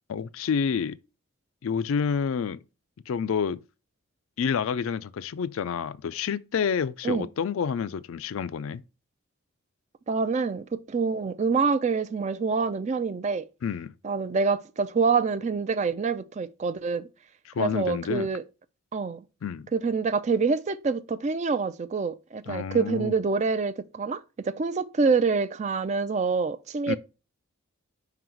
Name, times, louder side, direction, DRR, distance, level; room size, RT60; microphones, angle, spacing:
voice 1, 0.1-1.0 1.6-2.6 3.1-3.6 4.4-8.8 13.6-13.9 17.5-18.3 19.4-19.7 22.5-23.1 26.9-27.0, left 6 dB, 70° left, 0.4 m, -28 dB
voice 2, 10.1-13.5 14.0-17.1 17.6-18.4 18.9-19.2 19.7-27.0, right 4 dB, 30° right, 0.3 m, -26 dB
5.5 x 3.9 x 4.4 m
head